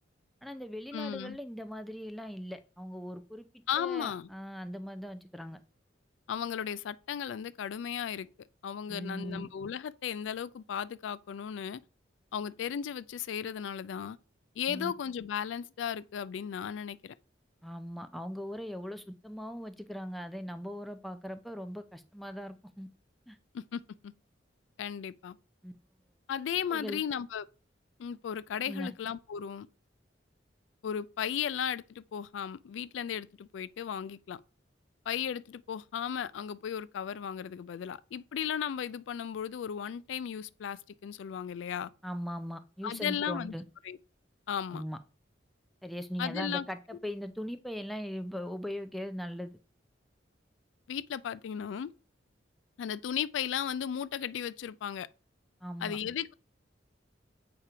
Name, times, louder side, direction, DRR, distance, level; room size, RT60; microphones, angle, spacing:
voice 1, 0.4-5.6 8.9-9.5 14.7-14.9 17.6-22.9 23.3-23.4 25.6-25.7 26.7-27.0 28.7-28.9 42.0-43.6 44.7-45.0 45.8-49.6 55.6-56.0, equal, ahead, 0.4 m, -40 dB
voice 2, 0.9-1.4 3.7-4.3 6.3-8.3 8.6-11.8 12.3-14.2 14.6-17.1 23.5-24.1 24.8-25.4 26.3-27.4 28.0-29.7 30.8-34.4 35.1-41.9 42.8-43.5 43.8-44.0 44.5-44.8 46.2-46.7 50.9-51.9 52.8-55.1 55.8-56.3, left 8 dB, 80° left, 0.3 m, -35 dB
8.2 x 2.9 x 4.8 m
head